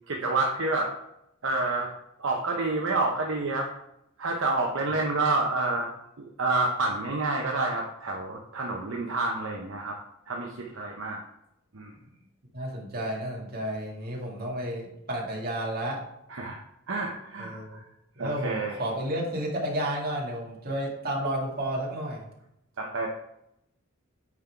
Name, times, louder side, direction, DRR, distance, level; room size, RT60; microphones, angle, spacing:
voice 1, 0.1-0.9 1.4-1.9 2.2-3.7 4.2-5.9 6.2-10.0 10.3-11.2 11.7-11.9 16.3-16.6 16.9-17.8 18.2-18.8 22.8-23.1, right 3 dB, 65° right, 0 dB, 0.8 m, -28 dB
voice 2, 12.5-16.0 17.4-17.8 18.2-22.3, right 1 dB, 45° right, -2 dB, 2.0 m, -31 dB
9.4 x 3.8 x 4.5 m, 0.81 s
head